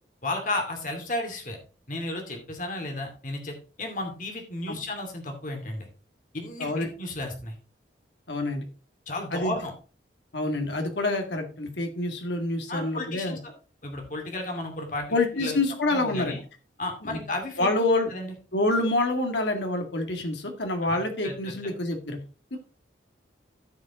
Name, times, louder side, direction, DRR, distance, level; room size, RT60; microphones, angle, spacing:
voice 1, 0.2-1.6 1.9-5.9 6.3-7.5 9.1-9.7 12.7-13.5 13.8-15.6 15.9-16.4 16.8-17.7 18.1-18.3 20.8-21.7, left 2 dB, 45° left, 2 dB, 2.5 m, -33 dB
voice 2, 8.3-8.6 9.3-9.6 10.3-13.4 15.1-16.4 17.0-17.2 17.6-18.1 18.5-22.2 22.5-22.6, left 2 dB, 70° left, 4 dB, 1.9 m, -27 dB
14.5 x 5.3 x 3.7 m, 0.36 s
head